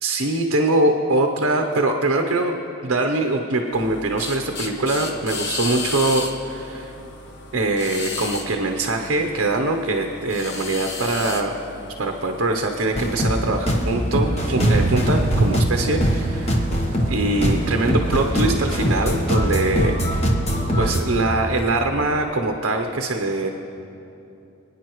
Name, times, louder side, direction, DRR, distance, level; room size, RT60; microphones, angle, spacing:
voice 1, 0.0-2.6 2.8-6.9 7.5-11.6 12.0-16.6 17.1-20.0 20.8-23.5, right 2 dB, 60° right, 3 dB, 0.8 m, -23 dB
sound 1, 3.7-18.2, left 3 dB, 55° left, 1.1 m, -35 dB
sound 2, 12.9-21.0, equal, 30° left, 1.1 m, -22 dB
Thunder / Rain, 14.5-19.5, right 3 dB, 40° right, 0.4 m, -27 dB
27.0 x 9.7 x 3.1 m, 2.9 s
head